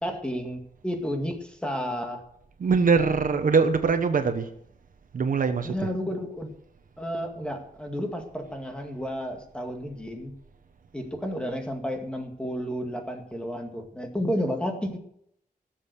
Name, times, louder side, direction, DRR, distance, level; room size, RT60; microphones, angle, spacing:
voice 1, 0.0-2.2 5.6-6.5 7.0-10.3 10.9-15.0, equal, 5° left, 2.1 m, -31 dB
voice 2, 2.6-4.5 5.1-5.7, right 5 dB, 65° right, 1.2 m, -22 dB
17.5 x 7.7 x 6.8 m
wide cardioid pair, 160°, 15 cm